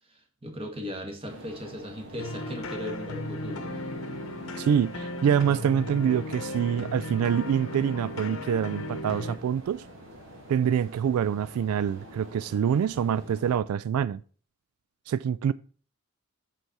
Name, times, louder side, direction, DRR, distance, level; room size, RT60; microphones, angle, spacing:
voice 1, 0.1-3.7, left 1 dB, 25° right, 1.6 m, -38 dB
sound 1, 1.3-13.6, equal, 60° right, 2.1 m, -47 dB
sound 2, 2.2-9.4, left 1 dB, 70° left, 0.9 m, -36 dB
voice 2, 4.6-9.8 10.5-14.2 15.1-15.5, right 8 dB, 90° right, 0.3 m, -26 dB
8.0 x 6.0 x 4.1 m
head